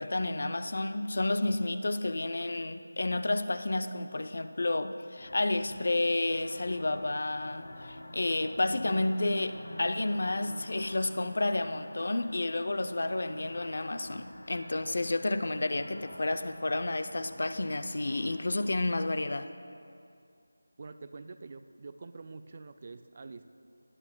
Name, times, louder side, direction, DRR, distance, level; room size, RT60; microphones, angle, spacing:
voice 1, 0.0-19.5, left 2 dB, 50° left, 10 dB, 0.5 m, -31 dB
sound 1, 5.2-18.7, left 1 dB, 70° left, 1.8 m, -48 dB
voice 2, 20.8-23.6, right 3 dB, 30° right, 10 dB, 0.3 m, -46 dB
19.0 x 10.5 x 2.2 m, 2.4 s
figure-of-eight pair, 175°, 0 cm